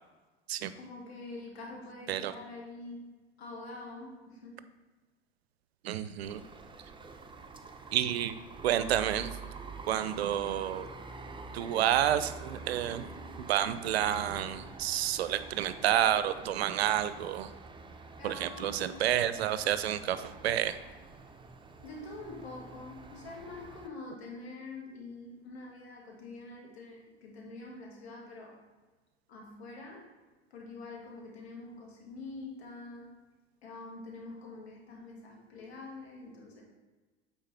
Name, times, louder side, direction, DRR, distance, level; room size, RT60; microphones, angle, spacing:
voice 1, 0.8-3.0 3.4-4.6 18.2-19.0 21.8-28.6 29.3-30.1 30.5-33.1 33.6-36.6, left 3 dB, 85° left, -1 dB, 1.9 m, -45 dB
voice 2, 5.8-6.4 7.9-8.4 8.6-9.4 9.9-10.9 11.5-13.0 13.5-17.5 18.2-20.8, right 11 dB, 80° right, 13 dB, 0.5 m, -29 dB
sound 1, 6.2-23.9, right 3 dB, 15° right, 0.7 m, -47 dB
8.7 x 4.3 x 3.4 m, 1.3 s
hypercardioid pair, 80°, 31 cm